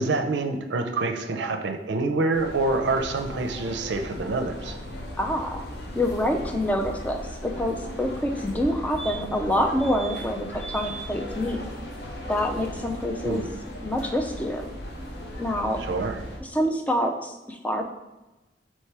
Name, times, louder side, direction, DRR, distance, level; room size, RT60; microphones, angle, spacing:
voice 1, 0.0-4.8 13.2-13.5 15.8-16.2, right 3 dB, 70° right, 6 dB, 0.5 m, -26 dB
sound 1, 2.3-16.4, left 1 dB, 60° left, 0.8 m, -37 dB
voice 2, 5.2-5.6 6.0-11.6 12.3-13.4 13.8-14.6 15.4-15.8 16.4-17.8, left 1 dB, 10° left, 3 dB, 0.4 m, -26 dB
sound 2, 8.7-8.8 9.0-9.5 9.8-10.2 10.6-11.0 13.4-13.5 13.7-13.8, right 5 dB, 40° left, 1.2 m, -39 dB
4.5 x 3.2 x 3.3 m, 1.1 s
head